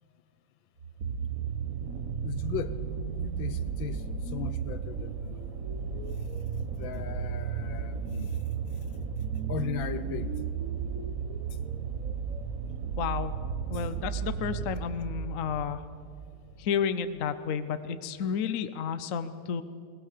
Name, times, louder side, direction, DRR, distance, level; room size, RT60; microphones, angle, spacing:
sound 1, 0.8-16.4 17.2-17.3, right 7 dB, 50° right, 1.2 m, -34 dB
voice 1, 2.2-2.8 3.2-6.2 6.5-8.4 8.9-9.0 9.5-10.4 13.7-13.8, left 9 dB, 70° left, 13 dB, 1.5 m, -38 dB
voice 2, 13.0-13.3 13.7-15.8 16.6-19.6, left 7 dB, 55° left, 11 dB, 0.9 m, -31 dB
21.5 x 19.5 x 6.8 m, 2.3 s
omnidirectional pair, 2.3 m